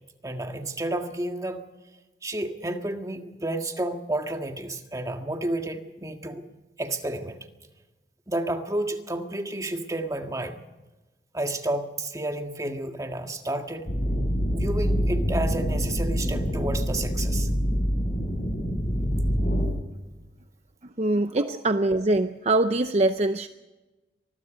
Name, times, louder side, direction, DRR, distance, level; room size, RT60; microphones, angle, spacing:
voice 1, 0.2-1.6 2.2-6.4 6.8-7.4 8.3-10.6 11.3-13.9 14.5-17.5 21.4-21.5, right 1 dB, 20° right, 5 dB, 1.7 m, -31 dB
sound 1, 13.9-19.7, equal, 55° left, 6.3 m, -25 dB
voice 2, 21.0-23.5, right 2 dB, 40° right, 9 dB, 0.7 m, -23 dB
25.0 x 20.5 x 5.2 m, 1.1 s
head